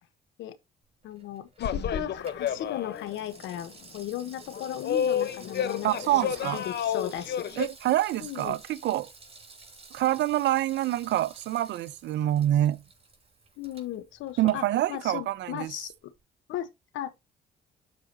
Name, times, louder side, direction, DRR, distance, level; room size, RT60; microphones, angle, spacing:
voice 1, 1.0-7.5 8.2-8.6 13.6-14.6 14.9-15.9 16.5-16.7 16.9-17.2, left 11 dB, 80° left, 1.2 m, -36 dB
Water tap faucet / Sink (filling or washing), 1.0-15.3 15.6-15.7, right 3 dB, 30° right, 4.6 m, -52 dB
sound 1, 1.6-3.2 3.4-3.6 4.4-7.7, left 9 dB, 60° left, 1.1 m, -30 dB
voice 2, 5.8-6.6 7.6-9.1 9.9-12.8 14.4-15.7, right 13 dB, 70° right, 0.6 m, -26 dB
12.5 x 4.9 x 2.9 m
supercardioid pair, 60°, 20 cm